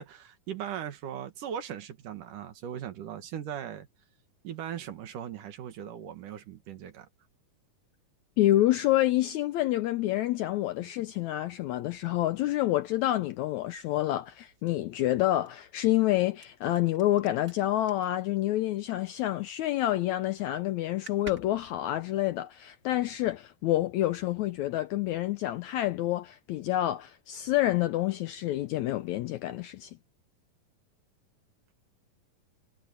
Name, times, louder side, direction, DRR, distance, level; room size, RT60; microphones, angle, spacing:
voice 1, 0.0-3.9 4.4-7.1, right 9 dB, 70° right, 3.1 m, -39 dB
voice 2, 8.4-29.9, left 14 dB, 80° left, 1.7 m, -28 dB
sound 1, 11.9-19.6 19.9-20.3 20.6-20.7 20.9-23.2, right 4 dB, 30° right, 2.5 m, -53 dB
omnidirectional pair, 3.9 m